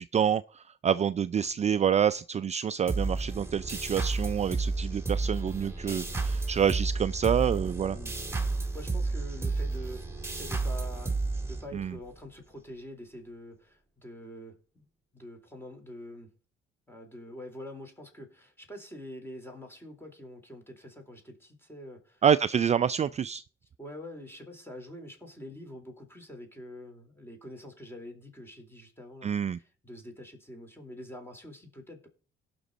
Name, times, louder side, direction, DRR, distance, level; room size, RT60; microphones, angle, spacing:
voice 1, 0.0-8.0 11.7-11.9 22.2-23.4 29.2-29.6, right 8 dB, 35° right, 0.4 m, -27 dB
sound 1, 2.9-12.1, right 3 dB, 10° right, 2.4 m, -31 dB
voice 2, 7.9-10.0 10.3-14.9 15.1-16.3 16.9-22.2 23.8-32.1, left 1 dB, 10° left, 3.9 m, -46 dB
18.0 x 6.1 x 4.0 m
cardioid pair, 90°, 20 cm